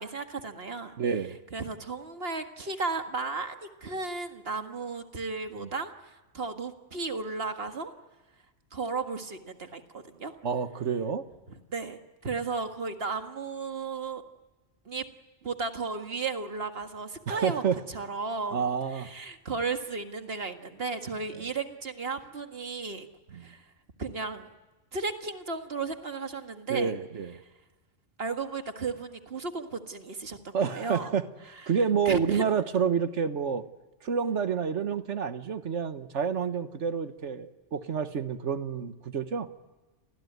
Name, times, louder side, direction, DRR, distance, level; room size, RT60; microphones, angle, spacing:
voice 1, 0.0-0.9 1.5-7.9 8.7-10.3 11.7-14.2 14.9-15.0 15.4-17.6 17.9-18.7 18.9-23.1 23.4-23.6 24.0-24.5 24.9-26.9 28.2-31.1 32.1-32.4, right 4 dB, 55° right, 6 dB, 1.9 m, -34 dB
voice 2, 1.0-1.4 5.6-5.7 10.4-11.2 17.3-17.8 18.5-19.1 23.3-23.5 26.7-27.4 30.5-31.2 31.7-33.6 34.0-39.5, right 6 dB, 75° right, 10 dB, 1.5 m, -29 dB
29.0 x 20.5 x 9.4 m, 1.2 s
omnidirectional pair, 1.3 m